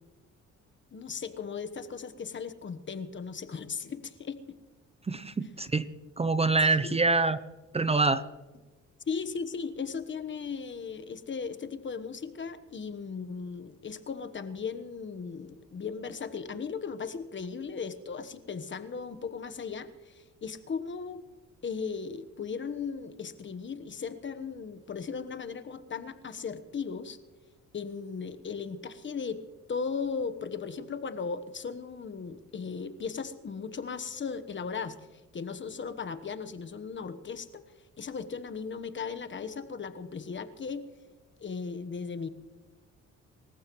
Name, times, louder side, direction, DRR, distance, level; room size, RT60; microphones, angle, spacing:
voice 1, 0.9-4.6 6.8-6.9 9.1-21.2 21.6-27.2 27.7-29.4 29.7-34.9 35.3-37.6 38.0-40.8 41.4-42.3, left 5 dB, 40° left, 10 dB, 1.2 m, -37 dB
voice 2, 5.1-5.9 6.2-7.4 7.7-8.2, right 3 dB, 20° right, 14 dB, 0.6 m, -25 dB
26.0 x 14.5 x 3.1 m, 1.3 s
cardioid pair, 90°, 30 cm